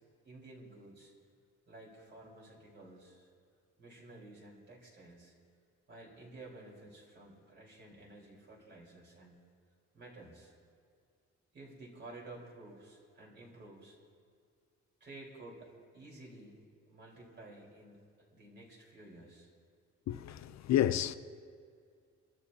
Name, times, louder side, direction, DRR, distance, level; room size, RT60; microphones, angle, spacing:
voice 1, 0.2-1.1 1.7-3.3 3.8-5.3 5.9-9.4 9.9-10.5 11.5-14.0 15.0-16.6 16.9-18.0 18.3-19.5, right 2 dB, 35° right, 4.2 m, -52 dB
voice 2, 20.1-21.2, left 11 dB, 65° left, 0.5 m, -30 dB
29.0 x 13.5 x 2.8 m
wide cardioid pair, 165°, 30 cm